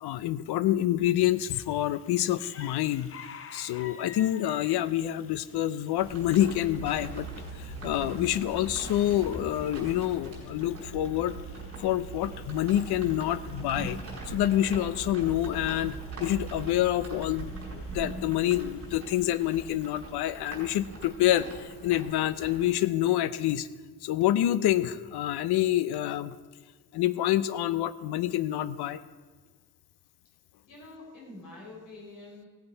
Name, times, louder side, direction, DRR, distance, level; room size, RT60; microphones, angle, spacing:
voice 1, 0.0-3.1 3.5-7.3 7.6-11.4 11.8-14.0 14.3-23.7 24.0-26.3 26.9-29.0, left 13 dB, 90° left, 16 dB, 0.7 m, -27 dB
sound 1, 1.2-20.1, left 6 dB, 35° left, 0.8 m, -53 dB
sound 2, 6.0-22.7, right 2 dB, 40° right, 4.6 m, -43 dB
sound 3, 6.6-18.0, right 5 dB, 5° right, 4.5 m, -44 dB
voice 2, 30.7-32.5, left 2 dB, 55° left, -3 dB, 4.4 m, -46 dB
16.5 x 8.1 x 5.6 m, 1.4 s
cardioid pair, 170°, 38 cm